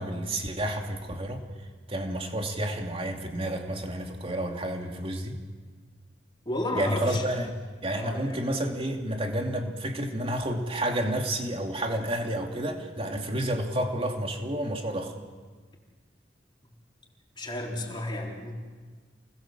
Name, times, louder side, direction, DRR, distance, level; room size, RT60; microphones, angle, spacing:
voice 1, 0.0-1.4 1.9-5.4 6.8-7.5 7.8-15.1, right 1 dB, 35° right, 3 dB, 2.8 m, -30 dB
voice 2, 6.5-7.3 7.9-8.4 17.3-18.6, left 1 dB, 25° left, -1 dB, 4.1 m, -33 dB
29.5 x 20.5 x 7.6 m, 1.5 s
head